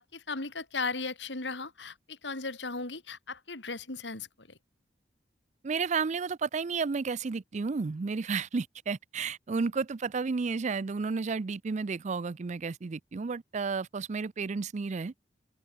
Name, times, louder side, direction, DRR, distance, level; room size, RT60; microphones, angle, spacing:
voice 1, 0.0-4.6, left 3 dB, 85° left, 3.5 m, -37 dB
voice 2, 5.6-15.1, right 4 dB, 40° right, 0.5 m, -32 dB
open air
head